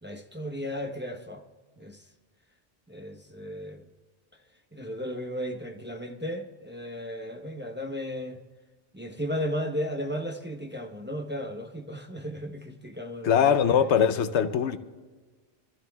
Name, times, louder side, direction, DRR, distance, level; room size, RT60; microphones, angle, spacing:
voice 1, 0.0-1.4 1.8-2.0 2.9-3.8 4.7-8.4 8.9-13.6, equal, 10° right, 0.8 m, -35 dB
voice 2, 13.2-14.8, left 8 dB, 85° left, 1.0 m, -22 dB
24.5 x 14.0 x 2.3 m
omnidirectional pair, 1.1 m